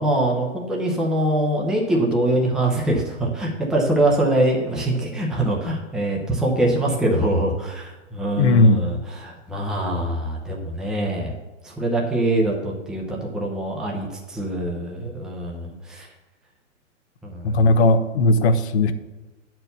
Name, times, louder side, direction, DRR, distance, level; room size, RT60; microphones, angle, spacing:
voice 1, 0.0-11.3 11.6-16.1 17.2-17.8, right 1 dB, ahead, -2 dB, 0.7 m, -23 dB
voice 2, 8.4-8.9 17.4-18.9, left 2 dB, 60° left, 10 dB, 0.9 m, -17 dB
8.6 x 4.6 x 6.7 m, 1.1 s
hypercardioid pair, 160°, 38 cm